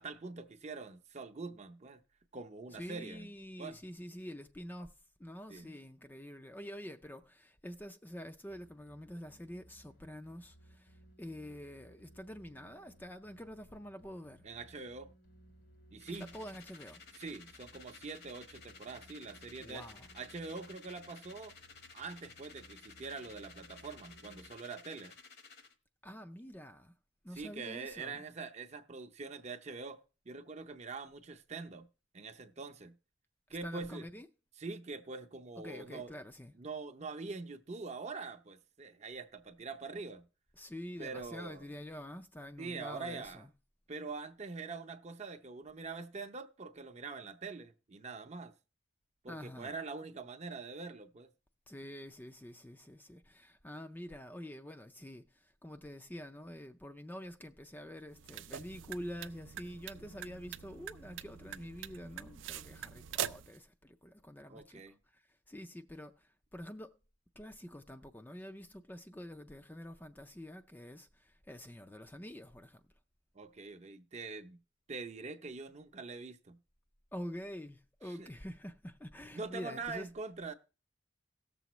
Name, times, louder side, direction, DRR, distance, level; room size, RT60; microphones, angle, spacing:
voice 1, 0.0-2.0 2.3-3.3 3.6-3.8 5.5-5.7 14.4-15.1 15.9-16.3 17.1-19.9 20.1-21.5 21.9-25.2 27.3-31.9 32.1-33.0 33.5-34.1 34.6-36.1 36.6-40.3 41.0-41.6 42.6-43.5 43.9-48.5 49.2-51.3 64.5-65.0 73.3-74.6 74.9-76.6 78.0-78.3 79.3-80.5, right 4 dB, 35° right, 0.6 m, -44 dB
voice 2, 2.7-4.9 5.2-14.4 16.2-17.0 19.6-20.1 26.0-26.9 27.2-28.2 33.6-34.3 35.6-36.5 40.6-43.5 49.3-49.8 51.7-67.0 67.4-72.8 77.1-80.1, equal, 10° left, 0.4 m, -47 dB
sound 1, 8.5-24.5, right 1 dB, 85° left, 2.2 m, -62 dB
sound 2, 16.0-25.7, left 5 dB, 60° left, 1.1 m, -55 dB
sound 3, 58.1-63.6, right 10 dB, 80° right, 0.5 m, -44 dB
17.5 x 7.0 x 3.0 m
head